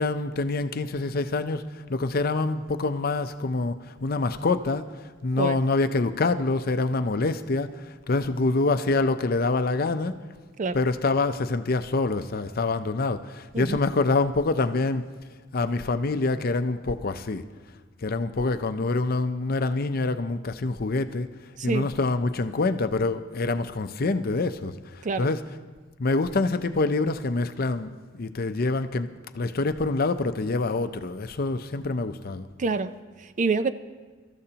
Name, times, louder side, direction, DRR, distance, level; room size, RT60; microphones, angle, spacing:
voice 1, 0.0-4.9 5.2-10.2 10.7-15.1 15.5-17.4 18.0-21.3 21.6-25.4 26.0-29.1 29.3-32.5, left 3 dB, 50° left, 0.6 m, -26 dB
voice 2, 21.6-21.9 25.0-25.3 32.6-33.7, right 4 dB, 40° right, 0.4 m, -27 dB
24.5 x 13.5 x 2.9 m
head